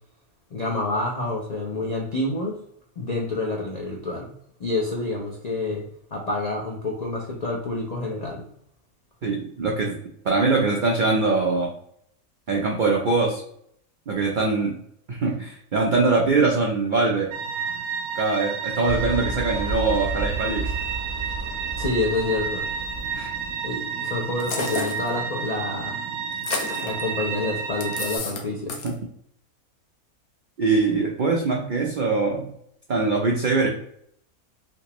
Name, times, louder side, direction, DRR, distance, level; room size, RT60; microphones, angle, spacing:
voice 1, 0.5-2.6 3.0-4.3 4.6-8.4 21.8-22.7 23.6-26.0 26.8-28.7, left 2 dB, 70° left, -1 dB, 0.3 m, -28 dB
voice 2, 9.2-10.0 10.2-11.7 12.5-13.4 14.1-14.8 15.1-17.3 18.2-20.7 23.1-23.3 28.8-28.9 30.6-32.5 32.9-33.7, right 3 dB, 75° right, -1 dB, 0.4 m, -22 dB
sound 1, 17.3-28.2, right 6 dB, 90° right, 1.2 m, -31 dB
sound 2, 18.8-23.6, right 3 dB, 45° left, 1.3 m, -32 dB
sound 3, 24.4-25.1 26.3-27.0 27.8-28.4 28.7-28.9, left 4 dB, 85° left, 1.2 m, -30 dB
3.4 x 2.9 x 2.9 m, 0.68 s
omnidirectional pair, 1.5 m